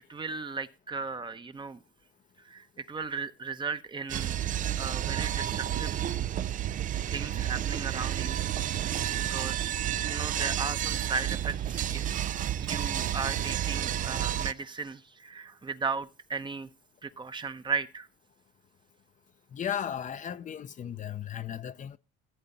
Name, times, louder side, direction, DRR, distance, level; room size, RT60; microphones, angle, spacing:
voice 1, 0.1-1.8 2.4-5.9 7.1-8.4 8.8-9.7 10.0-12.2 12.6-16.7 17.0-18.1, right 4 dB, 25° right, 0.9 m, -36 dB
sound 1, 4.1-14.5, right 11 dB, 40° right, 0.5 m, -31 dB
voice 2, 19.5-22.0, left 9 dB, 40° left, 0.6 m, -35 dB
14.5 x 8.0 x 4.2 m
supercardioid pair, 90°, 20 cm